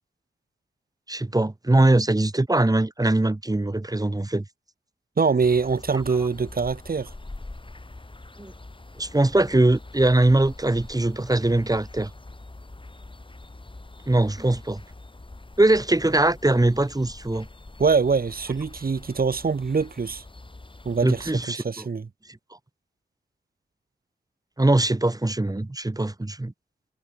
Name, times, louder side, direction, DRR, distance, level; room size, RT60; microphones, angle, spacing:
voice 1, 1.1-4.4 8.4-8.5 9.0-12.1 14.1-14.8 15.6-17.5 21.0-21.8 24.6-26.5, right 2 dB, 20° right, 1.5 m, -21 dB
voice 2, 5.2-7.1 17.8-20.2 20.8-22.1, right 5 dB, 50° right, 1.4 m, -24 dB
sound 1, 5.4-21.4, left 2 dB, 25° left, 2.6 m, -44 dB
cardioid pair, 50°, 19 cm